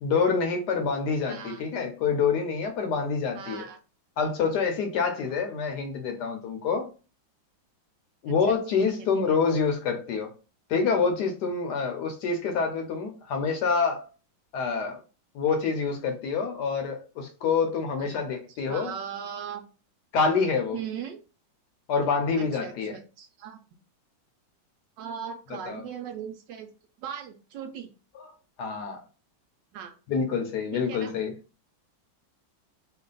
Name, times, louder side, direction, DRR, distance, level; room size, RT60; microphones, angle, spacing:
voice 1, 0.0-3.6 4.2-6.9 8.2-10.3 10.7-14.0 14.5-15.0 15.3-18.9 20.1-20.8 21.9-22.9 25.7-25.8 28.6-29.0 30.1-31.3, left 5 dB, 70° left, 4 dB, 1.1 m, -26 dB
voice 2, 1.3-1.7 3.3-3.8 8.3-8.6 8.9-9.4 18.0-18.1 18.5-19.6 20.7-21.2 22.4-23.6 25.0-26.7 27.0-27.9 29.7-29.9 30.7-31.1, right 8 dB, 75° right, 6 dB, 1.1 m, -39 dB
3.2 x 2.3 x 3.7 m, 0.33 s
omnidirectional pair, 2.1 m